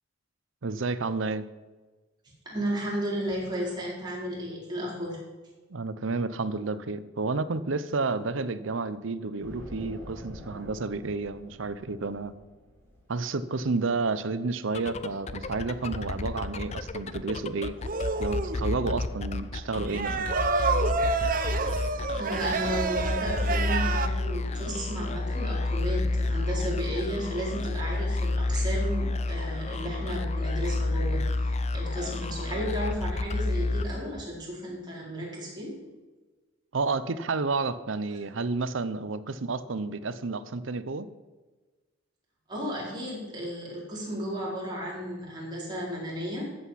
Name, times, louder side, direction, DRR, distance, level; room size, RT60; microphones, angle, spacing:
voice 1, 0.6-1.4 5.7-12.3 13.1-17.8 18.2-20.4 36.7-41.1, right 3 dB, 75° right, 14 dB, 0.7 m, -31 dB
voice 2, 2.4-5.2 21.7-35.8 42.5-46.7, equal, 20° right, -5 dB, 4.5 m, -34 dB
sound 1, 9.4-14.3, left 1 dB, 15° left, 3.6 m, -46 dB
sound 2, 14.6-34.4, left 2 dB, 35° left, 0.5 m, -30 dB
sound 3, 17.8-18.6 19.9-24.1, right 4 dB, 45° right, 0.8 m, -28 dB
14.0 x 8.1 x 5.8 m, 1.3 s
head